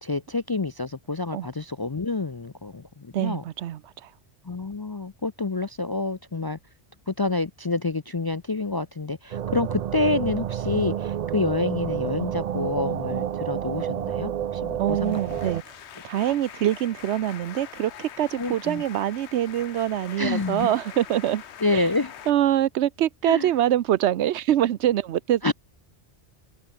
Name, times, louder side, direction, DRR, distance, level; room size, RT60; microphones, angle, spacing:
voice 1, 0.0-3.4 4.4-6.6 7.1-15.2 18.4-18.8 20.2-20.7 21.6-22.1 23.2-23.5 25.4-25.5, left 3 dB, 35° left, 0.4 m, -28 dB
voice 2, 3.1-4.1 14.8-15.7 16.0-21.4 21.7-21.9 22.3-25.5, right 12 dB, 85° right, 0.9 m, -24 dB
sound 1, 9.3-15.6, right 10 dB, 55° right, 0.4 m, -29 dB
sound 2, 14.9-22.3, left 9 dB, 80° left, 1.1 m, -43 dB
omnidirectional pair, 1.1 m